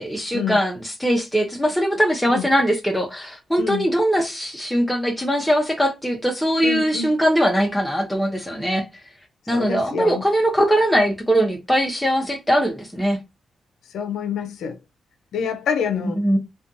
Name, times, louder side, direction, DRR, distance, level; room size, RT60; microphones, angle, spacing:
voice 1, 0.0-8.8 9.5-13.2 16.2-16.4, equal, 5° left, 0.5 m, -21 dB
voice 2, 3.6-3.9 6.6-7.1 9.5-10.2 13.9-14.8 15.3-16.2, left 6 dB, 85° left, 0.4 m, -27 dB
2.5 x 2.2 x 2.6 m
cardioid pair, 60°, 0 cm